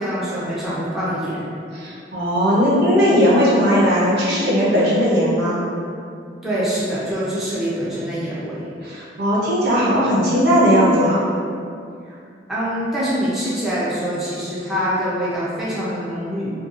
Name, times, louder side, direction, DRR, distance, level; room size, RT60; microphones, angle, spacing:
voice 1, 0.0-1.5 6.4-8.7 12.1-12.2 12.5-16.5, equal, ahead, -10 dB, 0.5 m, -24 dB
voice 2, 1.7-5.6 8.8-11.2, equal, 65° right, -6 dB, 0.6 m, -17 dB
2.7 x 2.2 x 2.4 m, 2.4 s
head